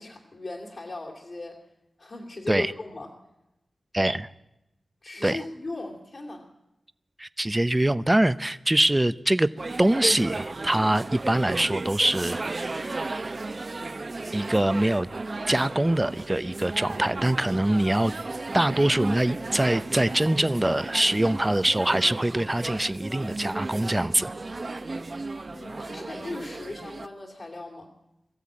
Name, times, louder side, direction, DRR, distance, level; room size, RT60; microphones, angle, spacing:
voice 1, 0.0-1.6 2.0-3.1 5.0-6.4 25.5-27.9, left 2 dB, 50° left, -1 dB, 2.8 m, -37 dB
voice 2, 3.9-4.3 5.2-5.4 7.2-9.5 9.8-13.1 14.3-15.1 15.5-18.1 18.5-24.3, right 1 dB, 15° right, 14 dB, 0.7 m, -24 dB
sound 1, 9.6-27.1, right 3 dB, 40° right, 1.0 m, -35 dB
22.5 x 15.0 x 8.6 m, 0.93 s
wide cardioid pair, 90°, 0 cm